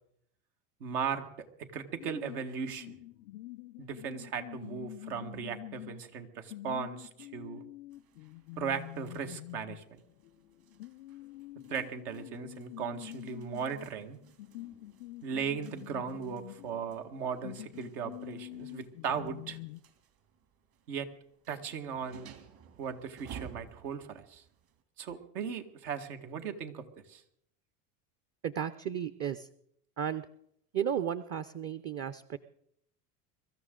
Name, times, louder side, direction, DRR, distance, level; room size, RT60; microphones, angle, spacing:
voice 1, 0.8-1.3 1.6-3.0 3.8-7.6 8.6-10.0 11.7-14.2 15.2-19.6 20.9-21.1 21.5-22.3 22.8-24.4 25.0-27.2, right 7 dB, 75° right, 6 dB, 1.9 m, -37 dB
sound 1, 2.0-19.8, left 17 dB, 80° left, 0.6 m, -46 dB
sound 2, 7.9-24.8, right 8 dB, 50° right, 2.7 m, -56 dB
voice 2, 28.4-29.5 30.0-30.3 30.7-32.4, right 9 dB, 30° right, 11 dB, 0.7 m, -34 dB
23.5 x 13.5 x 3.8 m, 0.71 s
hypercardioid pair, 90°, 46 cm